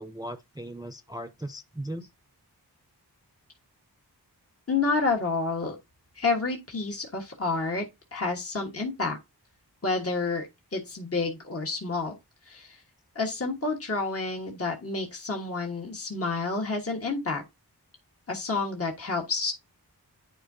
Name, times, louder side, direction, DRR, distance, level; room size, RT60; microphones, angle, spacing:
voice 1, 0.0-2.1, right 1 dB, 10° right, 0.5 m, -38 dB
voice 2, 4.7-5.8 6.1-7.8 8.1-9.2 9.8-12.1 12.4-12.8 13.1-17.4 18.3-19.5, left 3 dB, 35° left, 1.4 m, -29 dB
10.0 x 4.5 x 2.7 m
wide cardioid pair, 70°, 41 cm